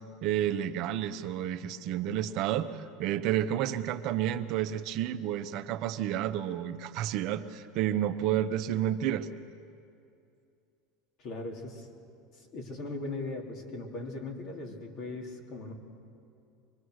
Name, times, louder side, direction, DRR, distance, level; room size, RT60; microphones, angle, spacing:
voice 1, 0.2-9.3, right 11 dB, 55° right, 8 dB, 0.9 m, -30 dB
voice 2, 11.2-11.9 12.5-15.7, left 2 dB, 50° left, 1 dB, 3.5 m, -39 dB
25.0 x 21.5 x 6.5 m, 2.5 s
supercardioid pair, 125°, 0 cm